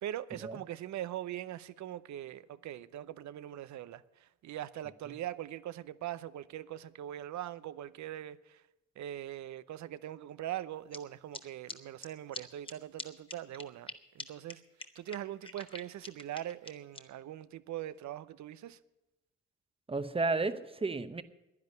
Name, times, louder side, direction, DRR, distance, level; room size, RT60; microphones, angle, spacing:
voice 1, 0.0-8.6 9.0-14.6 14.9-18.8, right 12 dB, 70° right, 0.7 m, -42 dB
sound 1, 10.9-11.0 11.3-11.4 11.7-11.8 12.0-12.1 12.3-12.4 12.7-12.8 13.0-13.1 13.3-13.9 14.2-14.3 14.5-14.6 14.8-17.0, left 3 dB, 15° left, 1.2 m, -43 dB
voice 2, 19.9-21.2, right 3 dB, 20° right, 0.9 m, -32 dB
11.0 x 10.5 x 9.5 m
cardioid pair, 90°, 30 cm